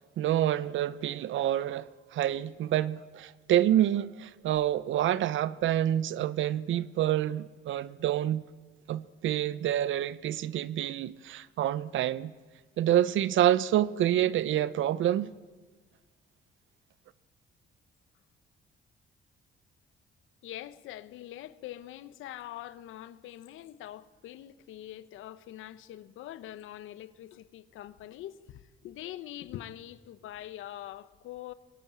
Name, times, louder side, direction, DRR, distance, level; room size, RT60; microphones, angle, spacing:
voice 1, 0.2-8.4 8.9-12.3 12.8-15.3, right 12 dB, 75° right, 0.8 m, -27 dB
voice 2, 20.4-31.5, left 13 dB, 90° left, 1.0 m, -44 dB
23.5 x 19.0 x 8.8 m
cardioid pair, 90°, 20 cm